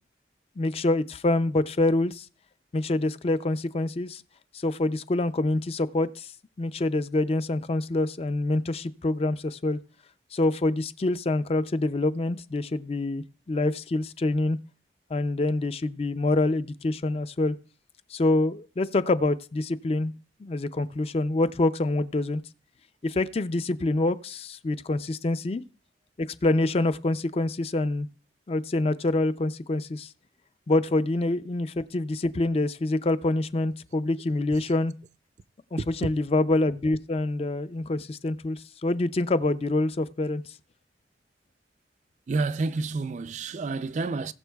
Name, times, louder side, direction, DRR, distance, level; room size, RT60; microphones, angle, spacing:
voice 1, 0.6-2.3 2.7-4.2 4.5-6.3 6.6-9.8 10.3-14.6 15.1-17.6 18.1-20.1 20.4-22.4 23.0-25.6 26.2-28.1 28.5-30.1 30.7-34.9 35.7-40.5, left 2 dB, 35° left, 0.4 m, -26 dB
voice 2, 35.8-36.1 42.3-44.3, right 3 dB, 40° right, 0.3 m, -29 dB
19.5 x 6.9 x 2.3 m
head